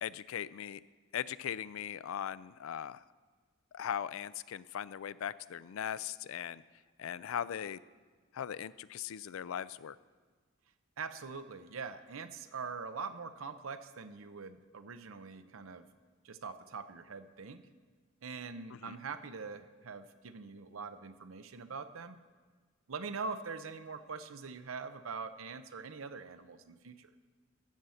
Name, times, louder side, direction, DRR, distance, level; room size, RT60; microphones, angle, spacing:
voice 1, 0.0-0.8 1.1-3.0 3.7-6.6 7.0-7.8 8.3-10.0 18.8-19.0, left 9 dB, 80° left, 17 dB, 0.4 m, -39 dB
voice 2, 11.0-15.9 16.2-17.6 18.2-22.2 22.9-27.1, right 5 dB, 80° right, 11 dB, 0.7 m, -43 dB
14.5 x 5.7 x 7.6 m, 1.5 s
head